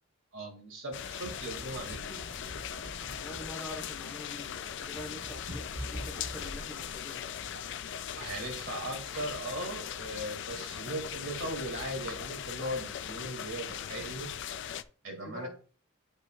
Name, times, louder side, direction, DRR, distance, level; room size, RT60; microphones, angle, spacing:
voice 1, 0.3-2.2 8.2-14.3 15.0-15.5, right 1 dB, 65° right, 2 dB, 2.3 m, -38 dB
sound 1, 0.9-14.8, left 9 dB, 55° left, 0.4 m, -40 dB
sound 2, 0.9-7.0, equal, 40° right, 1.3 m, -45 dB
voice 2, 3.1-7.3 15.0-15.5, left 1 dB, ahead, -4 dB, 3.5 m, -45 dB
11.5 x 5.4 x 2.4 m, 0.40 s
head